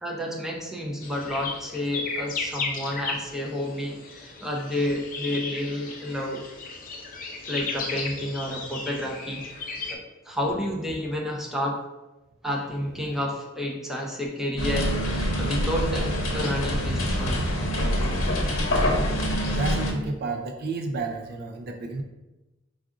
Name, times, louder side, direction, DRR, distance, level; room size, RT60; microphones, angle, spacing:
voice 1, 0.0-6.4 7.5-9.4 9.9-11.8 12.4-16.1 16.3-17.5, left 1 dB, ahead, -2 dB, 0.6 m, -30 dB
sound 1, 1.0-9.9, left 4 dB, 45° left, 0.6 m, -35 dB
sound 2, 14.6-19.9, equal, 80° left, 1.1 m, -25 dB
voice 2, 18.2-18.5 19.5-22.0, right 3 dB, 50° right, 5 dB, 0.4 m, -32 dB
4.8 x 2.4 x 3.7 m, 1.0 s
head